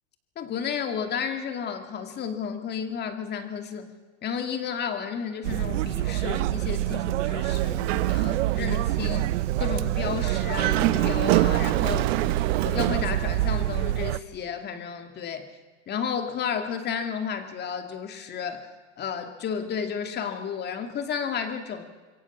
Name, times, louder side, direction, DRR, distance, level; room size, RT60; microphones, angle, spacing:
voice 1, 0.4-3.9 4.2-12.1 12.6-15.5 15.9-18.7 19.0-21.8, left 7 dB, 25° left, 6 dB, 2.4 m, -32 dB
sound 1, 5.4-14.2, right 15 dB, 70° right, 0.8 m, -26 dB
Dog, 7.5-8.6 9.0-9.2 10.4-13.1, right 16 dB, 55° right, 1.6 m, -26 dB
26.5 x 22.5 x 7.4 m, 1.4 s
supercardioid pair, 135°, 37 cm